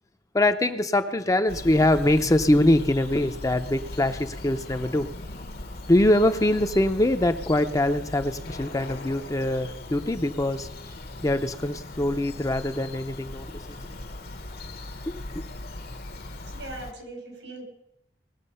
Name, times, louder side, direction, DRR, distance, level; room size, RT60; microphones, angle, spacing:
voice 1, 0.3-5.1 5.9-10.7 11.2-13.6 15.1-15.4, left 1 dB, 20° left, 8 dB, 0.6 m, -23 dB
Bird vocalization bird call bird song, 1.5-16.9, left 2 dB, 60° left, 1.1 m, -39 dB
voice 2, 16.5-17.6, right 2 dB, 90° right, 2 dB, 4.7 m, -40 dB
20.0 x 7.1 x 5.6 m, 0.80 s
head